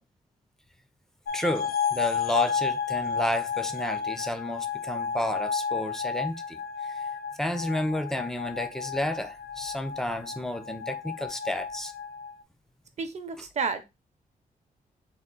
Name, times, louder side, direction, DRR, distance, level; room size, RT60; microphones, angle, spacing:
sound 1, 1.3-12.4, left 6 dB, 75° left, 0.5 m, -32 dB
voice 1, 1.3-7.0 7.4-11.9, left 1 dB, 5° left, 0.4 m, -31 dB
voice 2, 13.0-13.9, right 5 dB, 45° right, 0.7 m, -31 dB
3.6 x 2.4 x 3.7 m
wide cardioid pair, 135°, 15 cm